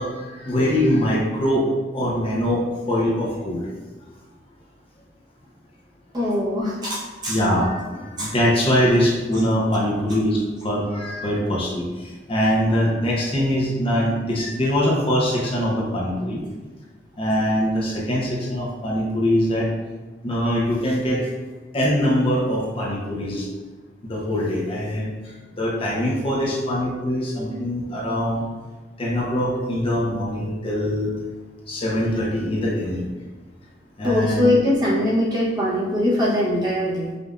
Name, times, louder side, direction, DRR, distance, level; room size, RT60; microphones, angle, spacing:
voice 1, 0.0-3.6 7.3-16.4 17.2-19.7 20.2-21.3 21.7-23.5 24.0-28.4 29.0-31.1 31.7-33.1 34.0-34.5, equal, 30° left, -4 dB, 0.6 m, -23 dB
voice 2, 6.1-7.4 8.2-8.3 34.0-37.2, left 1 dB, 25° right, -6 dB, 0.9 m, -22 dB
5.1 x 2.5 x 2.4 m, 1.3 s
head